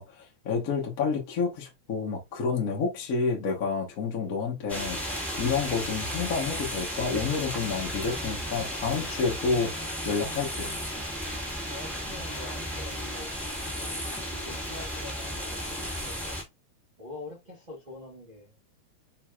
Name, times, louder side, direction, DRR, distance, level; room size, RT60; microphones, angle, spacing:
voice 1, 0.0-10.7, left 5 dB, 55° left, 0.9 m, -29 dB
sound 1, 4.7-16.4, equal, ahead, 1.4 m, -34 dB
voice 2, 11.7-13.3 13.7-16.4 17.0-18.5, left 2 dB, 80° right, 0.4 m, -45 dB
4.7 x 4.6 x 2.3 m
omnidirectional pair, 3.4 m